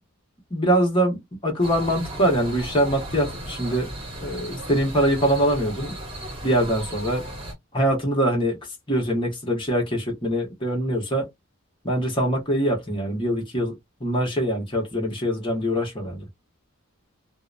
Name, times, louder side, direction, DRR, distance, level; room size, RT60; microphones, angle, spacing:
voice 1, 0.5-3.9 4.2-5.9 6.4-7.2 7.7-8.6 8.9-11.3 11.8-13.7 14.0-16.2, right 1 dB, 25° left, 1.1 m, -23 dB
sound 1, 1.6-7.5, right 1 dB, 25° right, 1.0 m, -36 dB
2.9 x 2.0 x 2.3 m
head